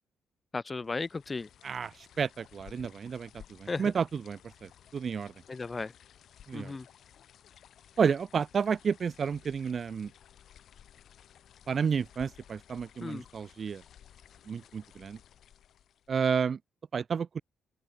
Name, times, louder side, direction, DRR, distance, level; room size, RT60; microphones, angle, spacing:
voice 1, 0.5-1.5 3.7-3.9 5.5-5.9 6.5-6.9 13.0-13.2, left 3 dB, 30° left, 1.3 m, -35 dB
sound 1, 0.8-16.2, left 9 dB, 65° left, 7.5 m, -57 dB
voice 2, 1.6-5.3 6.5-6.7 8.0-10.1 11.7-13.8 14.5-15.2 16.1-16.6 16.9-17.4, right 6 dB, 50° right, 1.0 m, -31 dB
open air
supercardioid pair, 65°, 0 cm